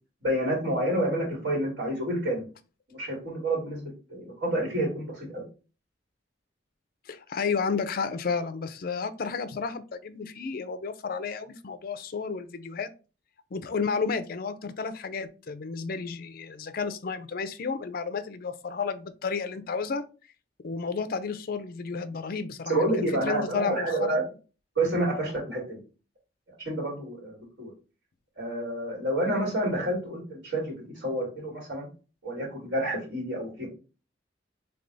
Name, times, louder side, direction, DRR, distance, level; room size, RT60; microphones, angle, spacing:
voice 1, 0.2-2.5 2.9-5.4 22.7-24.2 24.7-25.8 26.5-27.7 28.4-31.9 32.2-33.7, right 1 dB, 85° right, 2.5 m, -29 dB
voice 2, 7.1-12.9 13.5-20.0 20.6-24.2, left 5 dB, 55° left, 0.5 m, -32 dB
3.4 x 3.3 x 3.9 m
head